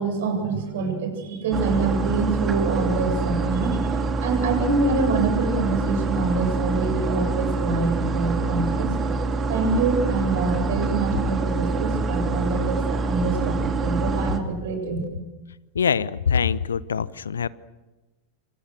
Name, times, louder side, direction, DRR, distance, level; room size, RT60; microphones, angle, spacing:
voice 1, 0.0-3.9 4.2-8.9 9.5-15.0, right 3 dB, 55° right, 4 dB, 7.9 m, -25 dB
sound 1, 1.5-14.4, right 3 dB, 25° right, 2.7 m, -25 dB
voice 2, 15.7-17.5, left 6 dB, 70° left, 19 dB, 0.9 m, -23 dB
28.0 x 27.0 x 6.5 m, 1.1 s
figure-of-eight pair, 90°, 0 cm